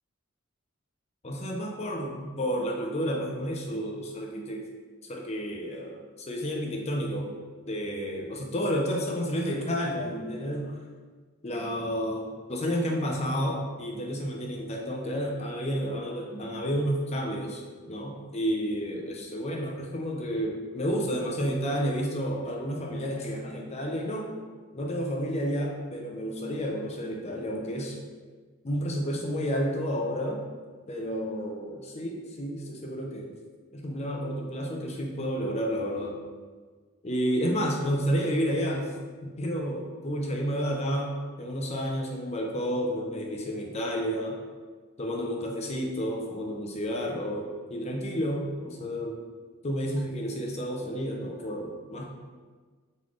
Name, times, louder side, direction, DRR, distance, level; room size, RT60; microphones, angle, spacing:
voice 1, 1.2-4.6 5.0-7.3 7.7-10.8 11.4-17.6 17.9-24.3 24.7-28.0 28.6-30.4 30.9-33.3 33.7-36.2 37.0-38.9 39.2-44.4 45.0-49.2 49.6-52.0, equal, 30° left, 0 dB, 0.6 m, -31 dB
3.9 x 3.1 x 3.8 m, 1.5 s
head